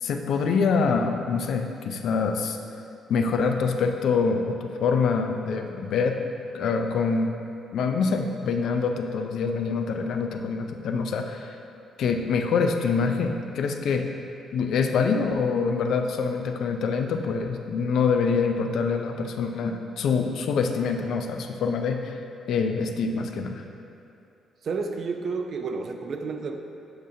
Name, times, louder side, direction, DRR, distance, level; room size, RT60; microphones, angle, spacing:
voice 1, 0.0-2.6 3.1-6.2 6.5-7.4 7.7-11.6 12.0-14.1 14.5-22.2 22.5-23.6, left 5 dB, 75° left, 5 dB, 0.4 m, -25 dB
voice 2, 24.6-26.6, right 4 dB, 55° right, 5 dB, 0.5 m, -30 dB
7.8 x 5.0 x 2.7 m, 2.6 s
cardioid pair, 90°, 0 cm